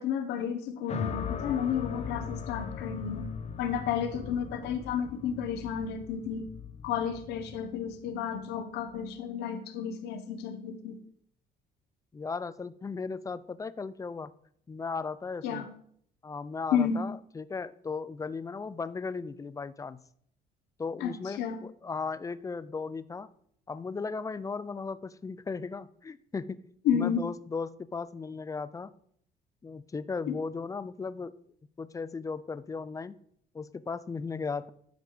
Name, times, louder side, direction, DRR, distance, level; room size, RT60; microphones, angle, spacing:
voice 1, 0.0-3.3 3.6-6.5 6.8-11.0 15.4-15.7 16.7-17.0 21.0-21.6 26.8-27.3 30.3-30.4, left 8 dB, 90° left, 8 dB, 1.3 m, -31 dB
sound 1, 0.9-9.1, left 6 dB, 40° left, 0.9 m, -39 dB
voice 2, 12.1-14.3 14.7-15.7 16.2-20.0 20.8-23.3 23.7-26.6 26.9-28.9 29.6-31.3 31.8-33.2 33.5-34.7, left 4 dB, 20° left, 15 dB, 0.5 m, -36 dB
11.5 x 5.3 x 4.9 m, 0.65 s
cardioid pair, 110°, 17 cm